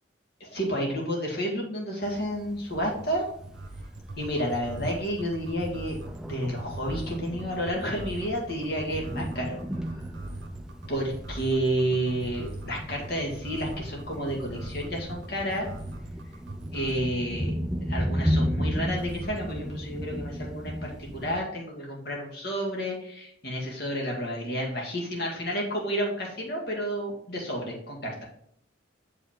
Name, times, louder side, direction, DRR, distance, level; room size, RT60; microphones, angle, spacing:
voice 1, 0.4-3.3 4.2-9.6 10.9-15.7 16.7-17.6 17.9-28.2, equal, 55° left, -1 dB, 1.9 m, -30 dB
Thunder, 2.0-21.4, equal, 5° right, 0.4 m, -35 dB
sound 1, 2.7-17.1 18.9-19.5, right 2 dB, 70° right, 1.2 m, -40 dB
6.8 x 5.2 x 3.6 m, 0.66 s
head